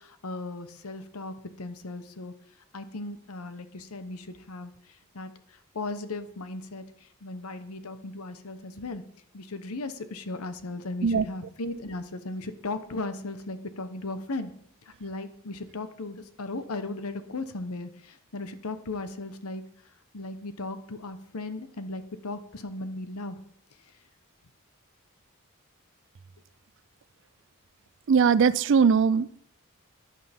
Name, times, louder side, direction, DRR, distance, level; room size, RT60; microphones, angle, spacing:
voice 1, 0.0-2.3 2.7-9.0 9.3-14.5 15.0-19.6 20.1-23.4, left 2 dB, 80° left, 1.0 m, -37 dB
voice 2, 28.1-29.3, right 6 dB, 55° right, 0.4 m, -20 dB
14.5 x 10.5 x 3.6 m
head